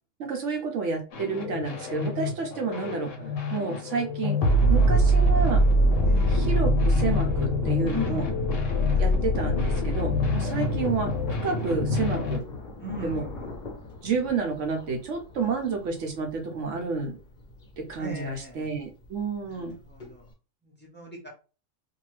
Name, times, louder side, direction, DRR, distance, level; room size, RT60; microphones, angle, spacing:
voice 1, 0.2-3.1 3.5-4.4 4.7-5.6 6.3-8.3 9.0-12.4 13.0-13.2 14.0-17.2 17.8-19.8, right 4 dB, 65° right, 3 dB, 0.8 m, -30 dB
sound 1, 1.1-12.4, equal, 60° left, 1.0 m, -24 dB
voice 2, 6.0-6.4 7.9-8.4 8.9-9.0 10.4-10.6 12.8-13.5 15.4-15.5 18.0-18.7 19.4-20.3 20.6-21.3, left 2 dB, 15° left, -3 dB, 0.3 m, -39 dB
Thunder, 10.3-20.3, left 2 dB, 40° left, 0.8 m, -45 dB
2.7 x 2.2 x 3.1 m, 0.33 s
omnidirectional pair, 1.6 m